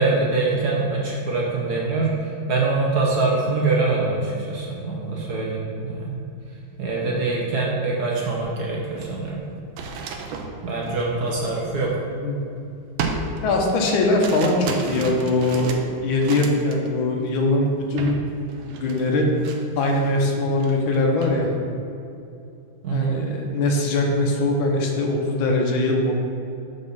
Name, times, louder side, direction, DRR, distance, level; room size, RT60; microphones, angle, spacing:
voice 1, 0.0-6.2 6.8-9.4 10.6-11.9 22.8-23.2, right 3 dB, 55° right, -3 dB, 1.3 m, -24 dB
sound 1, 8.3-8.5 8.8-12.4 13.0-16.9 17.2-17.5 18.0-18.2 18.5-20.2 20.5-21.4, right 4 dB, 75° right, 1.4 m, -33 dB
voice 2, 13.4-18.2 18.8-19.3 19.8-21.5 22.9-26.1, left 2 dB, 75° left, 1 dB, 1.5 m, -21 dB
6.7 x 4.1 x 5.4 m, 2.7 s
omnidirectional pair, 2.3 m